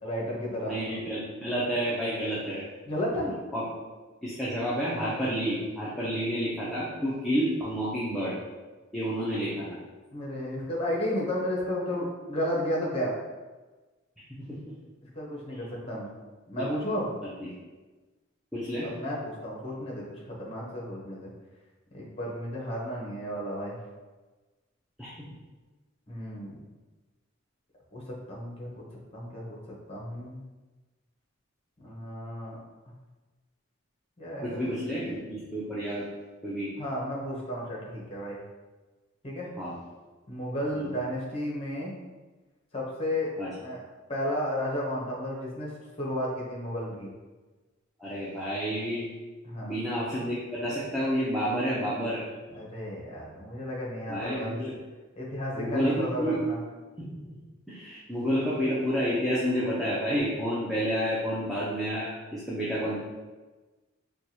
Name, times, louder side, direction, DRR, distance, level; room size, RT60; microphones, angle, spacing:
voice 1, 0.0-0.7 2.8-3.3 10.1-13.1 15.1-16.1 16.5-17.1 18.8-21.3 21.9-23.8 26.1-26.6 27.9-28.8 29.1-29.6 29.9-30.4 31.8-32.6 32.9-33.0 34.2-34.5 36.8-38.4 39.2-39.5 40.3-41.9 42.7-43.3 43.6-43.8 44.1-47.1 49.4-49.8 52.5-54.6 55.2-56.6 60.6-60.7, equal, 30° left, -3 dB, 0.8 m, -33 dB
voice 2, 0.6-2.6 3.5-3.6 4.2-8.4 8.9-9.7 14.5-14.7 16.6-16.7 17.4-17.5 18.5-18.9 25.0-25.1 34.4-36.0 36.4-36.7 39.6-39.8 40.7-40.9 43.4-43.5 48.0-49.1 49.6-52.2 54.1-54.7 55.5-56.4 57.0-57.4 57.7-63.0, equal, ahead, -9 dB, 0.5 m, -30 dB
4.5 x 2.2 x 2.8 m, 1.2 s
head